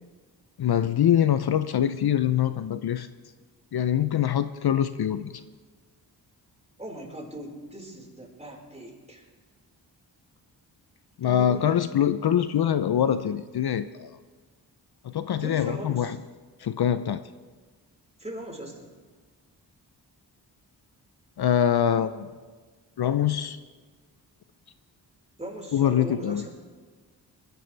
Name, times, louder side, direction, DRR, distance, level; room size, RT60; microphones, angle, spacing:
voice 1, 0.6-3.1 3.7-5.3 11.2-14.1 15.0-16.2 16.6-17.2 21.4-22.3 23.0-23.6 25.7-26.5, left 9 dB, 65° left, 12 dB, 0.7 m, -24 dB
voice 2, 6.8-9.2 11.2-11.7 15.3-16.2 18.2-18.9 25.4-26.6, right 1 dB, 15° right, -1 dB, 4.8 m, -39 dB
20.5 x 15.0 x 3.4 m, 1.4 s
cardioid pair, 50°, 42 cm